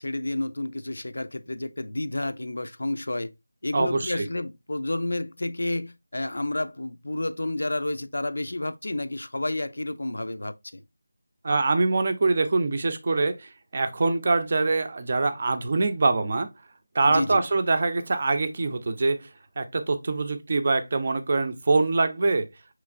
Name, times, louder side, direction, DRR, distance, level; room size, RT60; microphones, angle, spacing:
voice 1, 0.0-3.3 3.6-10.8 17.0-17.4, left 2 dB, 75° left, 0.5 m, -30 dB
voice 2, 3.7-4.3 11.4-16.5 16.9-19.3 19.6-22.5, right 3 dB, 35° right, 0.6 m, -24 dB
5.8 x 3.1 x 2.4 m
figure-of-eight pair, 175°, 0 cm